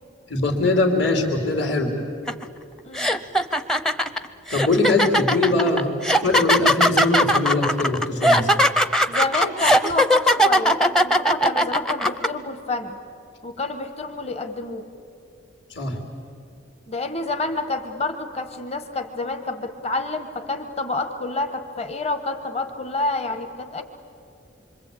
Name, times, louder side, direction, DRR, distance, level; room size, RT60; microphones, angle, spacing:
voice 1, 0.3-1.9 4.5-5.9 6.2-8.5 15.7-15.9, left 2 dB, 55° left, 3 dB, 3.3 m, -21 dB
sound 1, 2.3-2.4 2.9-12.3, equal, 5° left, 0.6 m, -19 dB
voice 2, 2.8-3.2 9.1-13.0 13.4-14.8 16.9-23.8, left 2 dB, 30° left, 6 dB, 1.4 m, -28 dB
26.5 x 25.0 x 8.6 m, 2.5 s
head